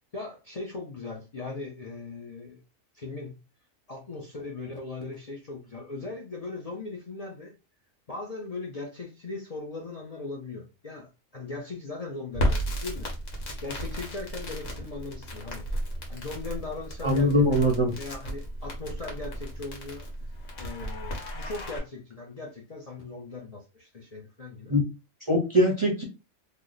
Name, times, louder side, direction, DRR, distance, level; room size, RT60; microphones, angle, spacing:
voice 1, 0.1-2.6 2.9-3.4 3.9-7.5 8.1-13.1 13.6-15.6 16.1-17.3 18.0-20.3 20.6-24.8, left 3 dB, 40° left, 0.6 m, -39 dB
Crackle, 12.3-21.8, equal, 80° left, 1.4 m, -34 dB
voice 2, 17.0-17.9 24.7-24.9 25.3-26.0, equal, 30° right, 0.6 m, -22 dB
3.2 x 2.1 x 3.8 m
omnidirectional pair, 1.3 m